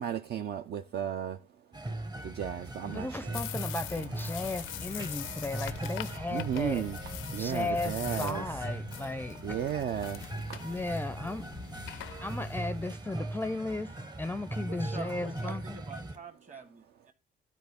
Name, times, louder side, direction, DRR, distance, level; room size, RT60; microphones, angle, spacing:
voice 1, 0.0-1.4 2.2-3.4 4.0-4.1 6.3-7.0 7.3-8.4 9.4-10.6, right 9 dB, 55° right, 0.5 m, -34 dB
sound 1, 1.7-16.2, right 2 dB, 20° right, 0.8 m, -40 dB
voice 2, 2.9-6.9 7.4-9.4 10.6-11.4 12.2-13.9 14.2-15.8, left 2 dB, 10° left, 0.4 m, -35 dB
sound 2, 3.3-12.9, left 14 dB, 85° left, 0.4 m, -43 dB
sound 3, 5.2-8.8, right 7 dB, 80° right, 1.9 m, -54 dB
voice 3, 14.6-17.1, right 5 dB, 35° right, 1.7 m, -46 dB
12.0 x 4.1 x 3.4 m
cardioid pair, 90°, 20 cm